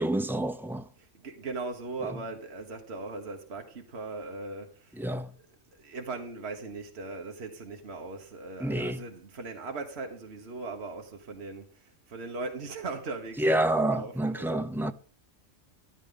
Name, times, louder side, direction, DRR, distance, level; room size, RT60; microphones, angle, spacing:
voice 1, 0.0-0.8 5.0-5.3 8.6-9.0 13.4-14.9, right 1 dB, 5° right, 0.3 m, -28 dB
voice 2, 1.0-5.5 5.7-14.7, right 3 dB, 60° right, 1.6 m, -39 dB
13.5 x 12.0 x 3.9 m
omnidirectional pair, 1.3 m